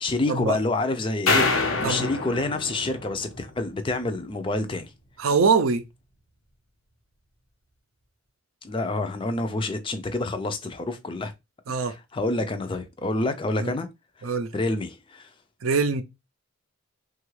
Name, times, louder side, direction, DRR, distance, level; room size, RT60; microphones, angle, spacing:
voice 1, 0.0-4.9 8.6-11.3 11.9-13.9 14.2-14.3 14.5-15.3, left 2 dB, 25° left, 0.3 m, -28 dB
sound 1, 1.3-3.6, left 4 dB, 80° left, 1.0 m, -26 dB
voice 2, 5.2-5.8 11.7-11.9 13.6-13.7 14.2-14.5 15.6-16.0, right 4 dB, 75° right, 0.5 m, -23 dB
3.3 x 2.3 x 3.1 m
head